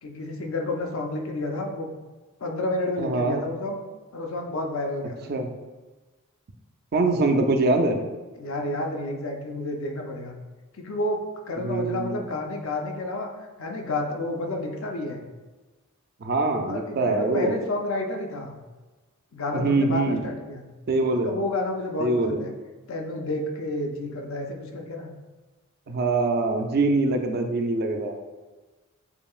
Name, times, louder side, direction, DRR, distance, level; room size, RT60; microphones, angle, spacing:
voice 1, 0.0-1.9 2.4-3.8 4.1-5.3 8.3-10.3 10.7-11.2 11.5-13.3 13.6-15.2 16.7-18.5 19.3-20.7 21.2-22.5 22.9-25.1, left 2 dB, 65° left, 2 dB, 0.6 m, -30 dB
voice 2, 3.0-3.4 5.3-5.5 6.9-8.0 11.6-12.2 16.2-17.6 19.5-20.2 20.9-21.4 22.0-22.4 25.9-28.2, right 2 dB, 45° right, 5 dB, 0.4 m, -23 dB
6.9 x 2.8 x 2.4 m, 1.2 s
head